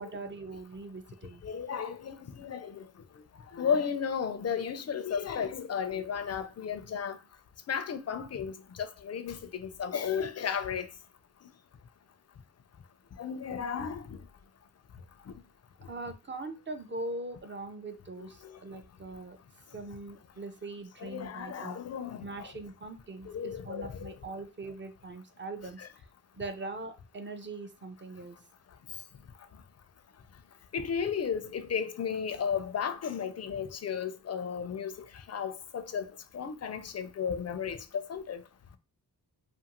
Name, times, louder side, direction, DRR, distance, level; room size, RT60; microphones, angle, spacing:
voice 1, 0.0-1.4 15.9-19.4 19.7-21.8 22.2-26.1 26.4-28.4, right 2 dB, 30° right, 0.5 m, -41 dB
voice 2, 1.4-2.9 3.5-7.2 7.7-10.9 13.2-14.2 18.2-18.6 21.0-22.5 23.3-24.2 25.8-25.9 30.7-38.4, left 7 dB, 40° left, 0.4 m, -34 dB
2.6 x 2.5 x 2.8 m
cardioid pair, 60°, 40 cm